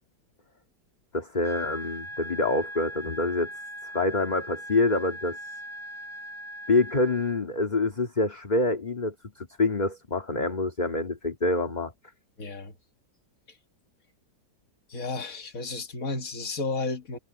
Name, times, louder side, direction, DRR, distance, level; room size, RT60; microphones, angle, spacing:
voice 1, 1.1-3.5 3.8-5.4 6.7-11.9, left 2 dB, 25° left, 2.0 m, -26 dB
sound 1, 1.4-7.4, equal, 5° right, 4.4 m, -40 dB
voice 2, 12.4-12.7 13.5-13.6 14.9-17.2, left 3 dB, 50° left, 2.1 m, -33 dB
omnidirectional pair, 1.9 m